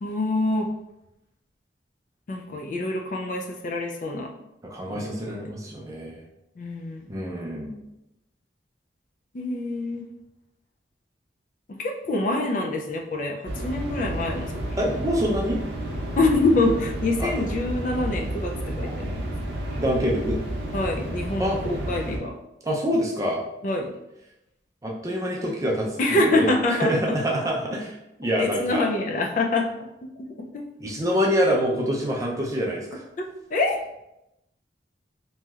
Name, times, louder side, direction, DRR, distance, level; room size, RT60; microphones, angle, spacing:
voice 1, 0.0-0.7 2.3-4.3 4.9-5.1 6.6-7.0 9.3-10.1 11.7-14.5 14.8-15.0 16.2-19.3 20.7-22.3 23.6-23.9 26.0-26.9 27.2-27.3 28.4-30.6 33.2-33.8, left 2 dB, 45° left, 2 dB, 0.3 m, -26 dB
voice 2, 4.6-6.2 7.1-7.8 14.8-15.6 17.2-17.4 19.8-20.4 21.4-21.6 22.6-23.4 24.8-27.9 28.2-28.8 30.8-33.0, equal, 20° right, -2 dB, 0.4 m, -26 dB
sound 1, 13.4-22.2, right 1 dB, 75° right, 0.7 m, -31 dB
3.0 x 2.7 x 2.3 m, 0.89 s
head